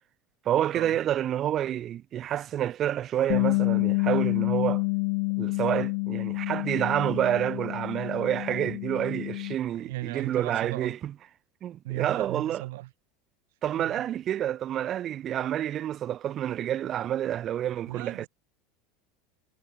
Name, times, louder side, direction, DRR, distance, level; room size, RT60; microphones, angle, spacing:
voice 1, 0.4-4.8 5.4-11.1 11.6-12.6 13.6-18.3, right 11 dB, 45° right, 0.8 m, -28 dB
Bass guitar, 3.3-9.5, left 37 dB, 65° left, 0.4 m, -28 dB
voice 2, 9.7-11.0 11.8-12.9 13.8-14.0 17.9-18.3, right 19 dB, 70° right, 6.1 m, -36 dB
hypercardioid pair, 80°, 0 cm